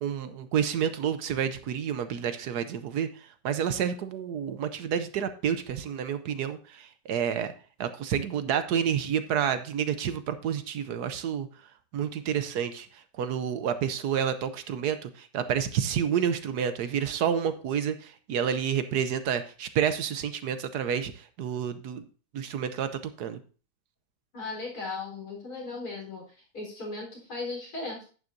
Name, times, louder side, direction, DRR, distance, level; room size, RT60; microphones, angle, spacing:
voice 1, 0.0-7.5 7.8-11.5 11.9-22.0 22.3-22.9 23.2-23.4, right 8 dB, 75° right, 11 dB, 1.2 m, -29 dB
voice 2, 24.3-26.3 26.5-28.0, left 3 dB, 60° left, -2 dB, 4.6 m, -37 dB
10.5 x 9.2 x 2.7 m, 0.37 s
omnidirectional pair, 1.8 m